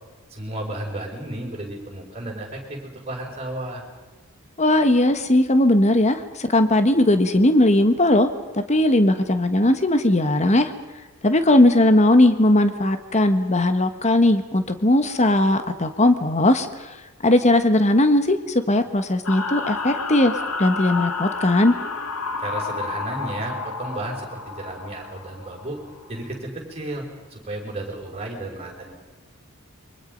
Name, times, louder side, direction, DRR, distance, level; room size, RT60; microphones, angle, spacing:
voice 1, 0.3-3.8 22.4-25.8 26.1-27.0 27.3-29.0, right 1 dB, 30° right, 0 dB, 5.5 m, -33 dB
voice 2, 4.6-8.3 8.5-10.7 11.2-16.7 17.2-18.4 18.7-20.3 20.6-21.8, left 1 dB, 30° left, 9 dB, 1.3 m, -18 dB
sound 1, 19.2-26.2, left 4 dB, 75° left, 1.8 m, -30 dB
28.5 x 24.0 x 5.3 m, 1.2 s
head